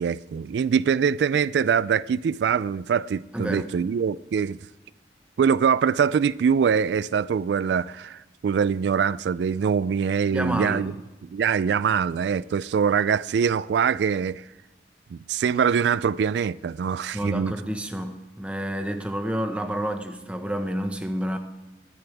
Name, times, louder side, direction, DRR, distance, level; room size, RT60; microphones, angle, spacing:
voice 1, 0.0-4.6 5.4-10.9 11.3-14.4 15.1-17.5, right 7 dB, 80° right, 0.3 m, -23 dB
voice 2, 3.3-3.7 10.3-10.8 17.1-21.4, equal, 5° right, 1.1 m, -29 dB
20.5 x 10.5 x 3.4 m
head